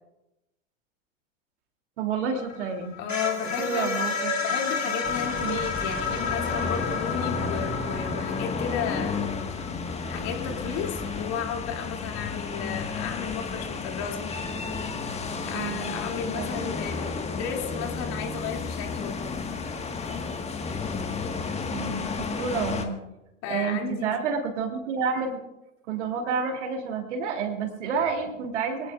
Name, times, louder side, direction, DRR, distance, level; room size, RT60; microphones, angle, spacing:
voice 1, 2.0-3.1 3.4-4.3 5.4-5.6 15.5-16.5 21.7-23.0 23.5-25.4 25.9-28.9, right 5 dB, 65° right, 4 dB, 3.2 m, -30 dB
sound 1, 2.4-11.2, left 5 dB, 90° left, 3.2 m, -32 dB
voice 2, 3.0-3.9 4.4-9.2 10.1-14.4 15.4-19.2 23.4-24.1, left 8 dB, 45° left, 2 dB, 3.0 m, -33 dB
sound 2, 5.0-22.9, left 4 dB, 15° left, 1.7 m, -32 dB
24.5 x 18.0 x 2.6 m, 0.96 s
figure-of-eight pair, 90°, 38 cm